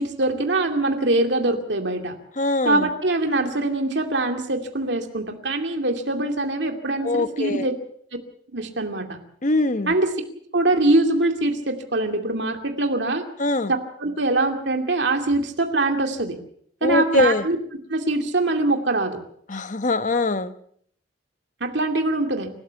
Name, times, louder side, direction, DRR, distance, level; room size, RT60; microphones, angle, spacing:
voice 1, 0.0-2.2 2.6-7.8 8.5-9.2 9.9-10.1 10.5-13.2 14.0-16.4 16.8-17.6 17.9-19.2 21.6-22.5, right 2 dB, 65° right, 5 dB, 2.5 m, -23 dB
voice 2, 2.4-2.9 7.0-7.7 9.4-9.9 13.4-13.7 16.8-17.4 19.5-20.5, left 2 dB, 45° left, 12 dB, 1.0 m, -22 dB
28.5 x 13.0 x 7.0 m, 0.65 s
head